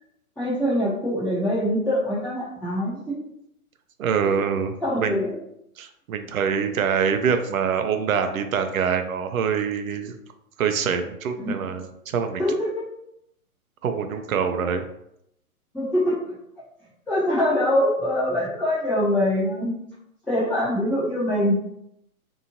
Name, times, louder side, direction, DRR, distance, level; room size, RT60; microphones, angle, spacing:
voice 1, 0.4-3.2 4.2-4.4 4.8-5.3 11.4-11.5 12.4-12.8 15.7-16.2 17.1-19.7 20.3-21.6, left 1 dB, 5° left, -12 dB, 0.8 m, -23 dB
voice 2, 4.0-5.2 5.8-10.1 10.6-11.9 12.1-12.4 13.8-14.8, right 6 dB, 70° right, 7 dB, 0.5 m, -25 dB
2.7 x 2.6 x 2.6 m, 0.79 s
hypercardioid pair, 145°, 44 cm